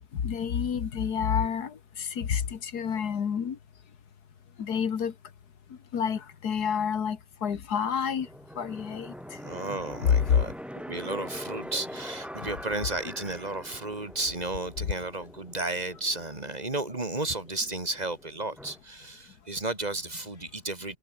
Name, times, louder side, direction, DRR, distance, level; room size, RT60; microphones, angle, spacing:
voice 1, 0.0-3.6 4.6-5.1 5.9-8.3 8.6-9.1, left 7 dB, 65° left, 2.0 m, -29 dB
sound 1, 8.1-18.8, equal, ahead, 5.0 m, -43 dB
voice 2, 9.4-21.0, right 2 dB, 25° right, 3.4 m, -33 dB
omnidirectional pair, 1.8 m